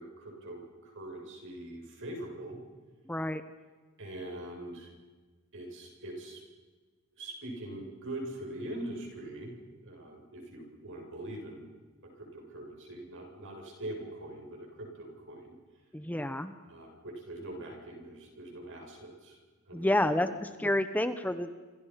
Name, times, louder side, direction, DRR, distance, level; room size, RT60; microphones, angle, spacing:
voice 1, 0.0-2.6 4.0-4.9 5.5-6.4 7.2-9.6 9.8-11.7 12.0-15.5 16.7-19.4 19.7-20.3, right 1 dB, 60° right, 2 dB, 7.5 m, -43 dB
voice 2, 3.1-3.4 15.9-16.5 19.7-21.7, left 1 dB, 10° left, 10 dB, 1.0 m, -29 dB
28.0 x 27.0 x 5.9 m, 1.3 s
head